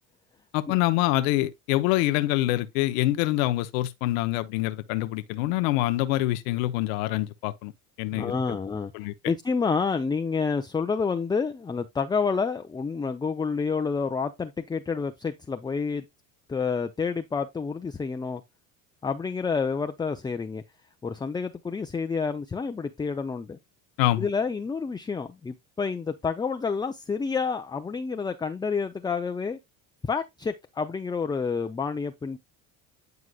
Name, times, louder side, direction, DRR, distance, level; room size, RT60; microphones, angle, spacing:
voice 1, 0.5-7.7 8.0-8.6 8.9-9.1 24.0-24.3, left 16 dB, 80° left, 0.7 m, -25 dB
voice 2, 8.1-16.1 16.5-18.4 19.0-20.6 21.0-23.6 24.2-29.6 30.0-32.4, left 5 dB, 10° left, 0.4 m, -29 dB
9.5 x 4.7 x 2.3 m
supercardioid pair, 95°, 40 cm